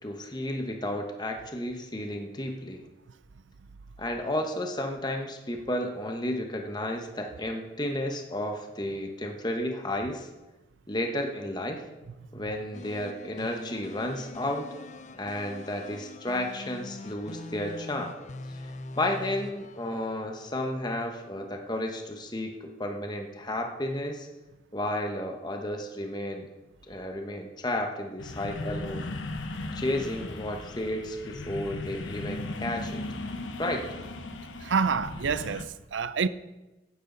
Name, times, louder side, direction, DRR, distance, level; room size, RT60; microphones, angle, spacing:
voice 1, 0.0-2.8 4.0-10.3 10.9-11.8 12.3-14.7 15.2-18.2 18.9-24.3 24.7-26.5 26.9-29.0 29.7-33.0 33.6-33.9, left 1 dB, 20° left, 1.1 m, -32 dB
sound 1, 12.7-20.9, left 2 dB, 40° left, 0.5 m, -44 dB
sound 2, 28.2-35.6, left 2 dB, 90° left, 1.0 m, -37 dB
voice 2, 34.6-36.3, right 5 dB, 85° right, 0.5 m, -27 dB
16.5 x 9.5 x 4.0 m
head